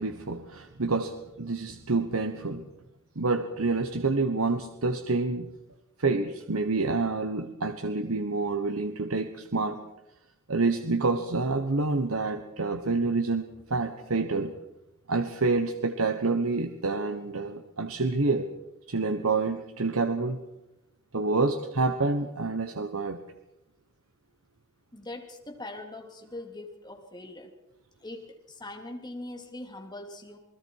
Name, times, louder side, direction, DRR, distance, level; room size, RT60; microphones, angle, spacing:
voice 1, 0.0-2.6 3.2-5.5 6.0-9.8 10.5-14.5 15.1-18.5 18.9-20.4 21.1-23.2, right 3 dB, 80° right, 7 dB, 1.2 m, -28 dB
voice 2, 24.9-27.5 28.0-30.4, left 2 dB, 20° left, 2 dB, 3.1 m, -41 dB
28.5 x 20.5 x 4.8 m, 0.95 s
head